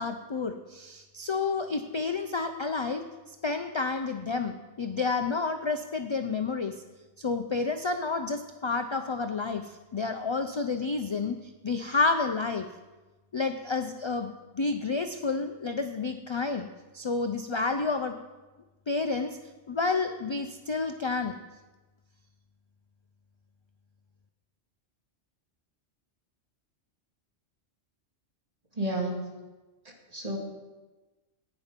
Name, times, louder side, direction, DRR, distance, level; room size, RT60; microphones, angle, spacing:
voice 1, 0.0-3.0 3.4-6.7 7.2-11.4 11.6-12.6 13.3-16.7 16.9-18.1 18.9-19.4 19.7-21.4, left 4 dB, 40° left, 7 dB, 0.4 m, -30 dB
voice 2, 28.8-29.3 30.1-30.4, right 1 dB, 35° right, -1 dB, 2.2 m, -31 dB
11.5 x 9.1 x 5.2 m, 1.2 s
omnidirectional pair, 1.1 m